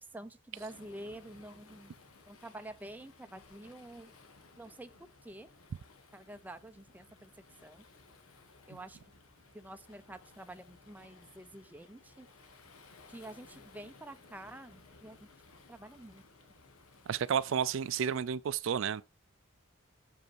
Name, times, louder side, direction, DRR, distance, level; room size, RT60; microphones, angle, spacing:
voice 1, 0.1-1.9 2.3-4.1 4.6-4.9 5.2-5.5 6.1-7.3 7.6-7.8 8.7-9.0 9.5-12.3 13.1-15.2 15.7-16.2, right 1 dB, 10° right, 0.4 m, -48 dB
Waves surf, 0.5-18.2, left 3 dB, 85° left, 1.3 m, -59 dB
voice 2, 17.1-19.0, right 7 dB, 65° right, 0.3 m, -31 dB
6.3 x 5.2 x 4.6 m
head